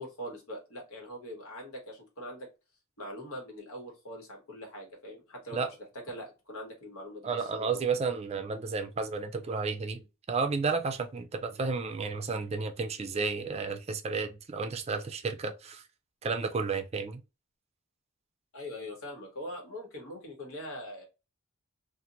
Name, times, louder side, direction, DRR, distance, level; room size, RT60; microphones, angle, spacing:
voice 1, 0.0-2.5 3.0-5.6 5.9-7.8 18.5-21.1, equal, 85° left, 1.4 m, -42 dB
voice 2, 7.2-15.8 16.2-17.2, right 4 dB, 30° right, 0.4 m, -32 dB
2.9 x 2.5 x 2.5 m
head